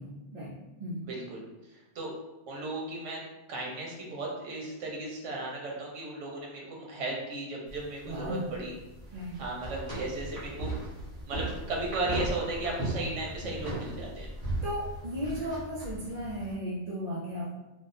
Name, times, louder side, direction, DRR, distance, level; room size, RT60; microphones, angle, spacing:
voice 1, 0.0-1.1 8.0-8.5 9.1-9.4 14.6-17.5, equal, 50° right, -7 dB, 0.5 m, -35 dB
voice 2, 1.1-2.1 2.5-3.2 3.5-8.7 9.4-10.7 11.3-14.3, right 2 dB, 80° right, -2 dB, 1.2 m, -36 dB
sound 1, 7.7-16.5, right 1 dB, 20° right, 1.0 m, -37 dB
3.5 x 2.2 x 2.6 m, 1.1 s
omnidirectional pair, 1.2 m